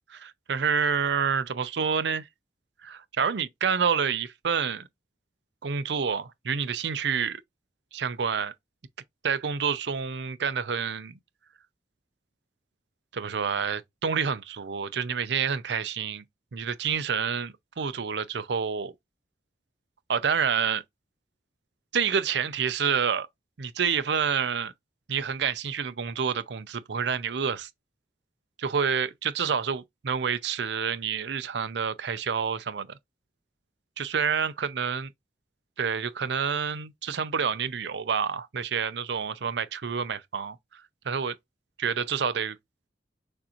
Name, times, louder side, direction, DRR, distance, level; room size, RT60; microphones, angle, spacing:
voice 1, 0.1-2.3 2.8-4.9 5.6-7.4 7.9-8.5 9.2-11.2 13.1-16.2 16.5-18.9 20.1-20.8 21.9-23.3 23.6-24.7 25.1-27.7 28.6-33.0 34.0-35.1 35.8-41.3 41.8-42.6, right 6 dB, 70° right, 0.6 m, -28 dB
6.5 x 2.6 x 3.0 m
head